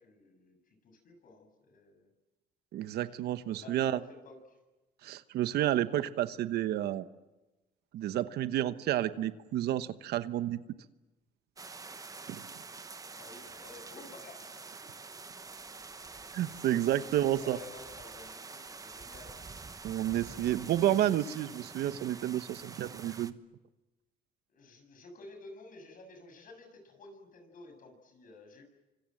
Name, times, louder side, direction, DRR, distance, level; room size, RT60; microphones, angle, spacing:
voice 1, 0.0-2.1 3.5-4.6 13.1-15.1 15.4-15.5 17.4-19.3 24.5-28.6, left 3 dB, 55° left, 5 dB, 7.4 m, -52 dB
voice 2, 2.7-4.0 5.0-7.1 7.9-10.6 12.3-12.4 16.3-17.6 19.8-23.4, right 12 dB, 70° right, 12 dB, 1.1 m, -30 dB
sound 1, 11.6-23.3, right 4 dB, 20° right, 1.1 m, -47 dB
29.0 x 25.0 x 7.8 m, 1.1 s
cardioid pair, 110°, 17 cm